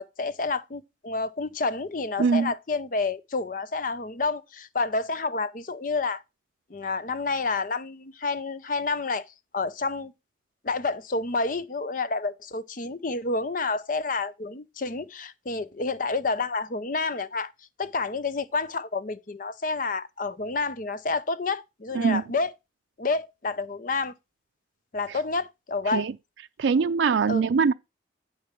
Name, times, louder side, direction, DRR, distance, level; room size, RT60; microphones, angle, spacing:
voice 1, 0.0-6.2 6.7-9.3 9.5-10.1 10.6-17.5 17.8-22.5 23.0-24.1 24.9-26.1 27.3-27.4, left 3 dB, 45° left, 0.6 m, -29 dB
voice 2, 2.2-2.5 21.9-22.2 25.9-26.1 26.6-27.7, right 5 dB, 80° right, 0.4 m, -22 dB
9.8 x 4.5 x 5.9 m
head